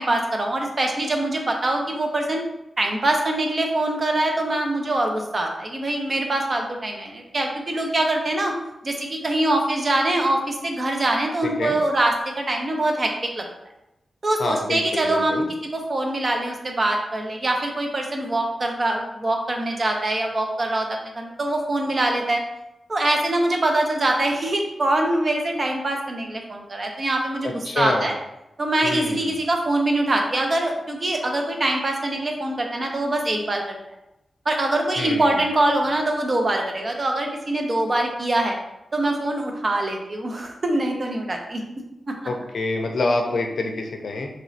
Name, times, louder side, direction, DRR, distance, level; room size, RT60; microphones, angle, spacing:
voice 1, 0.0-2.4 2.8-8.5 8.8-13.4 14.2-15.5 15.7-22.4 22.9-28.1 28.6-33.8 34.5-38.6 38.9-41.6 42.1-42.2, right 1 dB, 45° right, 2 dB, 0.6 m, -23 dB
voice 2, 14.4-15.4 27.4-28.1 28.8-29.3 35.0-35.4 42.2-44.3, left 2 dB, 70° left, 3 dB, 0.5 m, -26 dB
3.0 x 2.9 x 2.7 m, 0.89 s
wide cardioid pair, 80°, 0 cm